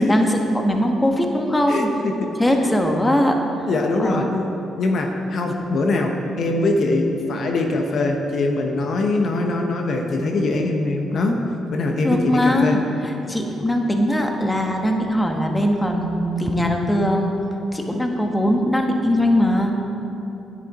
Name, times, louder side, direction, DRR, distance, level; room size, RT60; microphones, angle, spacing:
voice 1, 0.0-1.9 2.4-3.4 4.0-4.4 12.0-17.3 17.7-19.7, left 1 dB, 10° left, 2 dB, 1.2 m, -20 dB
voice 2, 1.7-2.3 2.6-2.7 3.7-4.3 4.8-11.4 11.7-12.8, left 2 dB, 60° left, 3 dB, 1.0 m, -22 dB
10.5 x 10.5 x 4.2 m, 3.0 s
cardioid pair, 90°, 0 cm